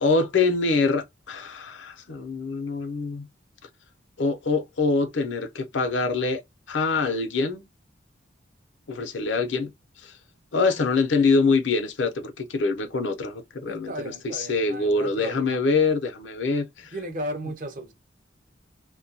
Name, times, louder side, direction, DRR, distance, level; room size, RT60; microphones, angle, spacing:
voice 1, 0.0-3.3 4.2-6.4 6.7-7.6 8.9-9.7 10.0-10.1 10.5-13.9 14.2-16.9, left 4 dB, 75° left, 0.6 m, -24 dB
voice 2, 13.6-15.6 16.9-17.9, equal, 45° right, 0.5 m, -35 dB
2.2 x 2.2 x 2.6 m
head